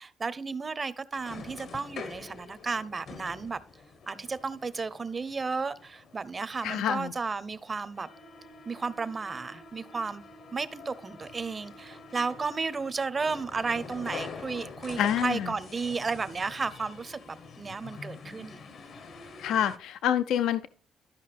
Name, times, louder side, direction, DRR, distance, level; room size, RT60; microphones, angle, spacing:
voice 1, 0.0-3.6 4.1-8.1 8.7-10.2 10.5-18.6, right 4 dB, 30° right, 0.6 m, -33 dB
sound 1, 1.1-19.8, left 4 dB, 65° left, 1.0 m, -46 dB
voice 2, 6.6-7.1 15.0-15.5 19.4-20.7, left 10 dB, 85° left, 0.4 m, -27 dB
12.5 x 5.3 x 3.3 m
cardioid pair, 90°, 0 cm